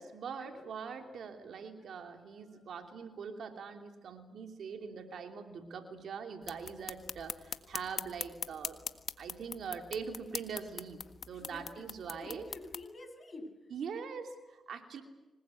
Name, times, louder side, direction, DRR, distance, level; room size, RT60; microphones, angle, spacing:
voice 1, 0.0-8.8 9.2-11.0 11.2-12.5 13.7-15.0, right 6 dB, 70° right, 4 dB, 2.9 m, -43 dB
voice 2, 2.0-3.0 11.4-11.9 12.2-13.5, left 2 dB, 35° left, 5 dB, 7.4 m, -50 dB
sound 1, 6.4-12.8, left 6 dB, 55° left, 1.5 m, -42 dB
25.5 x 20.0 x 8.4 m, 1.1 s
supercardioid pair, 60°, 0 cm